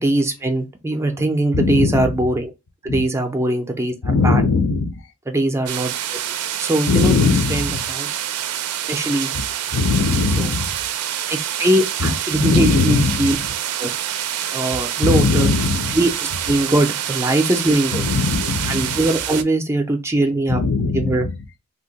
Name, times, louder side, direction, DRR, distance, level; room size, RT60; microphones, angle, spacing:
voice 1, 0.0-2.5 2.8-3.9 4.2-4.4 5.3-6.2 6.6-8.2 8.9-9.3 10.4-10.5 11.3-13.4 13.8-13.9 14.5-15.5 15.9-16.1 16.5-18.0 18.7-20.6 20.9-21.3, right 1 dB, 10° right, 0.4 m, -21 dB
voice 2, 1.5-2.1 2.9-3.0 4.0-4.9 6.9-7.8 9.7-10.7 12.0-13.5 15.0-16.0 17.9-19.0 20.5-21.3, left 4 dB, 55° left, 0.6 m, -20 dB
sound 1, 5.7-19.4, right 11 dB, 80° right, 0.4 m, -26 dB
2.7 x 2.2 x 3.9 m
head